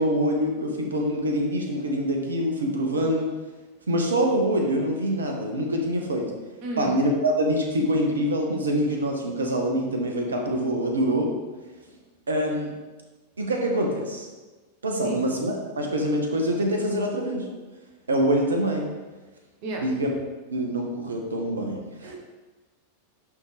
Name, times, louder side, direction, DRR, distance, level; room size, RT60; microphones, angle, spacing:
voice 1, 0.0-3.3 3.9-6.3 6.8-11.3 12.3-12.7 13.4-14.3 14.8-17.5 18.1-18.9 19.8-20.2 20.5-22.2, equal, 70° right, 1 dB, 1.1 m, -25 dB
voice 2, 6.6-6.9 15.0-15.3 19.6-19.9 22.0-22.2, right 2 dB, 45° right, 1 dB, 1.2 m, -32 dB
11.0 x 3.7 x 3.4 m, 1.2 s
figure-of-eight pair, 90°, 0 cm